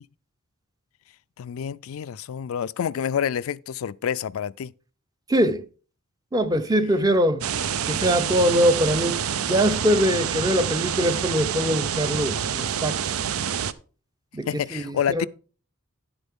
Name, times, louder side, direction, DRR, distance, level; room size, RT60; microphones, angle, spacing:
voice 1, 1.4-4.7 14.5-15.3, left 8 dB, 70° left, 0.4 m, -28 dB
voice 2, 5.3-5.6 6.3-7.4 7.9-9.2 9.5-13.0 14.3-15.3, equal, 15° right, 0.6 m, -22 dB
sound 1, 7.4-13.7, right 8 dB, 85° right, 0.5 m, -27 dB
11.0 x 7.9 x 3.6 m
head